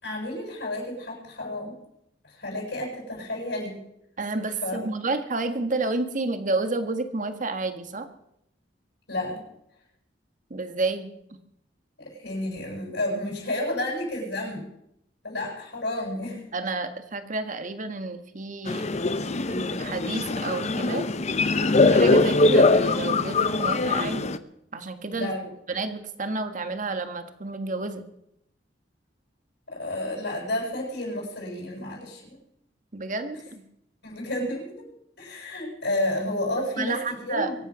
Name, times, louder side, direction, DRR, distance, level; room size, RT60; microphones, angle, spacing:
voice 1, 0.0-1.8 2.3-3.8 4.6-4.9 9.1-9.4 12.0-14.6 15.2-16.4 25.1-25.5 29.7-32.4 34.0-34.8 35.2-37.5, left 1 dB, 70° left, -3 dB, 7.7 m, -31 dB
voice 2, 4.2-8.1 10.5-11.1 16.5-18.9 19.5-21.0 21.9-24.4 24.7-25.3 25.7-28.0 32.9-33.6 36.8-37.5, right 3 dB, 45° right, 8 dB, 1.7 m, -30 dB
sound 1, 18.7-24.4, left 3 dB, 40° left, 0.7 m, -22 dB
24.0 x 9.2 x 6.3 m, 0.78 s
head